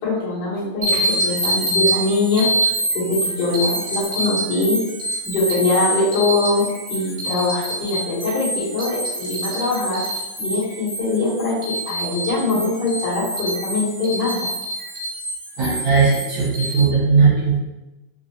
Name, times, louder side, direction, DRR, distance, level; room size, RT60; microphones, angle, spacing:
voice 1, 0.0-2.5 2.9-4.8 5.2-10.0 10.4-14.5, left 2 dB, 55° left, -8 dB, 1.6 m, -22 dB
sound 1, 0.8-16.8, right 1 dB, 50° right, 1.4 m, -26 dB
voice 2, 15.6-17.6, right 5 dB, 65° right, -7 dB, 2.0 m, -17 dB
4.2 x 2.4 x 2.8 m, 1.0 s
omnidirectional pair, 2.4 m